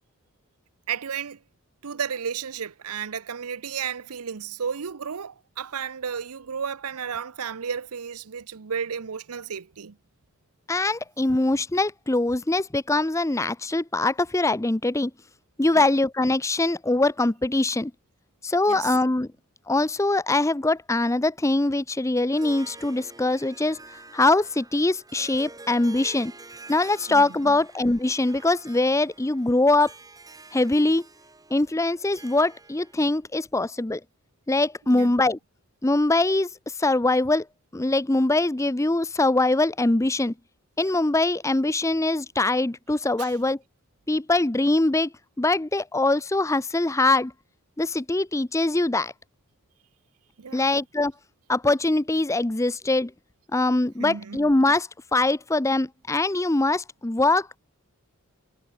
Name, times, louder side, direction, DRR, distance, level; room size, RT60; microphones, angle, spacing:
voice 1, 0.9-1.4 1.8-10.0 15.7-15.9 18.7-18.9 27.1-27.5 34.9-35.1 43.2-43.3 50.4-50.7 54.0-54.4, right 7 dB, 85° right, 0.7 m, -33 dB
voice 2, 10.7-15.1 15.6-17.9 18.4-19.3 19.7-23.8 24.1-26.3 26.7-29.9 30.5-31.1 31.5-34.0 34.5-35.4 35.8-37.5 37.7-40.3 40.8-43.6 44.1-47.3 47.8-49.1 50.5-51.1 51.5-53.1 53.5-57.6, left 2 dB, 15° left, 0.6 m, -23 dB
Harp, 22.2-33.1, right 3 dB, 15° right, 3.0 m, -47 dB
head